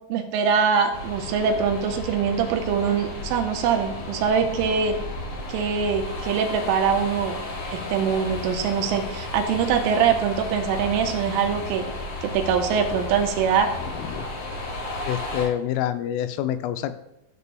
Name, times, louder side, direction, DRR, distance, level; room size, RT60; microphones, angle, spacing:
voice 1, 0.1-5.0 5.5-7.4 7.7-11.8 12.2-13.7, right 6 dB, 85° right, 4 dB, 3.2 m, -23 dB
sound 1, 0.9-15.5, left 2 dB, 50° left, 3.1 m, -33 dB
voice 2, 13.8-14.2 15.1-16.9, left 11 dB, 90° left, 10 dB, 3.2 m, -27 dB
13.5 x 6.8 x 2.2 m, 0.81 s
omnidirectional pair, 5.6 m